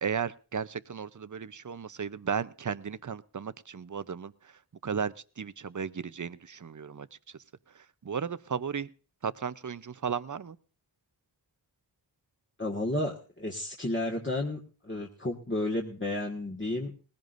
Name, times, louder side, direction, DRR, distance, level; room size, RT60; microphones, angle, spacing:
voice 1, 0.0-7.4 7.7-8.9 9.2-10.6, right 6 dB, 40° right, 15 dB, 0.7 m, -35 dB
voice 2, 12.6-16.9, left 1 dB, 25° left, -1 dB, 1.7 m, -32 dB
19.0 x 16.0 x 2.6 m, 0.37 s
wide cardioid pair, 50°, 45 cm